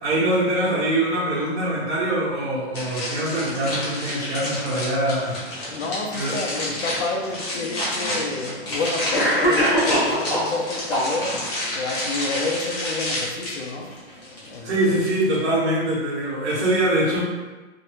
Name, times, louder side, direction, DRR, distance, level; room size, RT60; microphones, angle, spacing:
voice 1, 0.0-5.4 6.1-6.4 14.6-17.2, right 1 dB, 75° right, -10 dB, 1.1 m, -23 dB
sound 1, 2.7-15.4, left 1 dB, 35° left, 0.9 m, -30 dB
voice 2, 5.7-11.4 11.7-13.9 14.4-14.9, left 3 dB, 75° left, 2 dB, 0.6 m, -29 dB
Cough, 7.4-7.5 8.5-8.6 9.1-10.5 10.9-11.5, equal, 5° left, 0.5 m, -21 dB
2.6 x 2.0 x 2.9 m, 1.3 s
hypercardioid pair, 175°, 34 cm